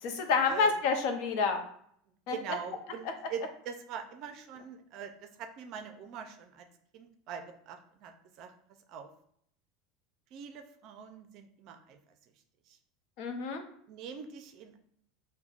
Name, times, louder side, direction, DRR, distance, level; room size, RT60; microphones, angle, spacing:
voice 1, 0.0-1.6 2.3-2.4 3.0-3.1 13.2-13.6, left 5 dB, 60° left, 5 dB, 0.6 m, -28 dB
voice 2, 2.3-6.7 6.9-8.5 8.9-9.1 10.3-12.0 12.7-12.8 13.9-14.8, right 7 dB, 50° right, 7 dB, 0.4 m, -43 dB
5.5 x 2.1 x 2.4 m, 0.67 s
supercardioid pair, 125°, 0 cm